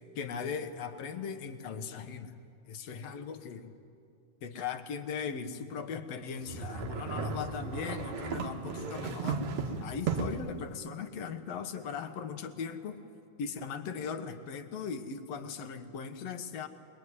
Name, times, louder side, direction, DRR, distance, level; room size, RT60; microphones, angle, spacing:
voice 1, 0.2-2.4 2.7-3.7 4.4-9.5 9.8-13.0 13.4-16.7, left 6 dB, 60° left, 8 dB, 2.2 m, -38 dB
sound 1, 6.5-10.5, right 5 dB, 70° right, 2.7 m, -35 dB
25.0 x 21.5 x 9.7 m, 2.4 s
omnidirectional pair, 3.5 m